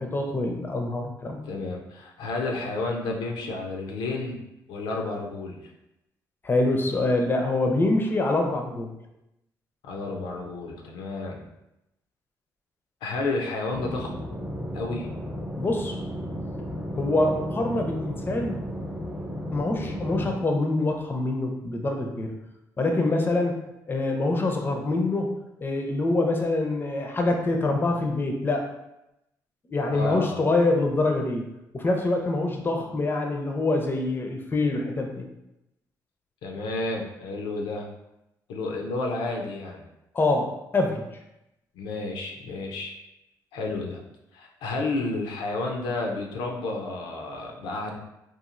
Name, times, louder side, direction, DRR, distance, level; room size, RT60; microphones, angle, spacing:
voice 1, 0.0-1.4 6.4-8.9 15.6-16.0 17.0-18.6 19.5-22.3 22.8-25.3 25.6-28.7 29.7-35.3 40.1-41.0, left 2 dB, 25° left, 3 dB, 0.5 m, -25 dB
voice 2, 1.5-4.4 4.7-5.6 9.8-11.4 13.0-14.2 14.7-15.1 29.9-30.4 36.4-37.9 38.5-39.8 41.8-42.9 43.5-44.0 44.3-48.0, left 2 dB, 90° left, 1 dB, 0.4 m, -31 dB
sound 1, 13.7-20.4, equal, 15° right, 0.8 m, -34 dB
3.0 x 2.4 x 2.4 m, 0.89 s
cardioid pair, 75°, 8 cm